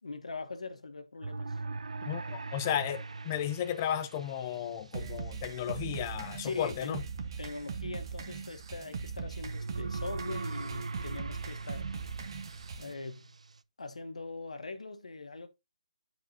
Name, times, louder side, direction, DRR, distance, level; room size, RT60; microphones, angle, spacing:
voice 1, 0.0-1.6 6.4-7.0 7.4-11.9 12.8-13.3 13.8-15.5, left 3 dB, 90° left, 1.1 m, -42 dB
sound 1, 1.2-4.9 9.5-13.6, right 3 dB, 85° right, 0.4 m, -41 dB
voice 2, 2.0-7.0, left 10 dB, 25° left, 0.6 m, -34 dB
sound 2, 4.9-12.9, right 5 dB, 45° right, 1.0 m, -40 dB
11.0 x 4.8 x 2.7 m
hypercardioid pair, 165°, 3 cm